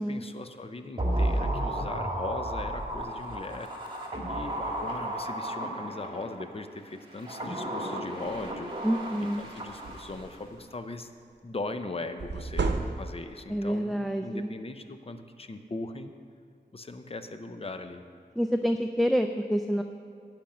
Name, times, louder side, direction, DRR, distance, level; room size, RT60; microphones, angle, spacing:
voice 1, 0.0-3.7 4.3-8.7 9.4-11.1 11.4-16.1 16.7-18.0, left 2 dB, 30° left, 8 dB, 0.7 m, -39 dB
sound 1, 1.0-6.4 7.1-10.3 10.6-10.7, right 1 dB, 25° right, 2.0 m, -33 dB
sound 2, 8.2-8.5 9.0-9.1 9.4-10.5 12.2-13.4, right 3 dB, 75° right, 0.8 m, -33 dB
voice 2, 8.8-9.4 13.5-14.5 18.4-19.8, equal, ahead, 5 dB, 0.4 m, -27 dB
11.5 x 5.2 x 8.6 m, 2.3 s
wide cardioid pair, 75°, 18 cm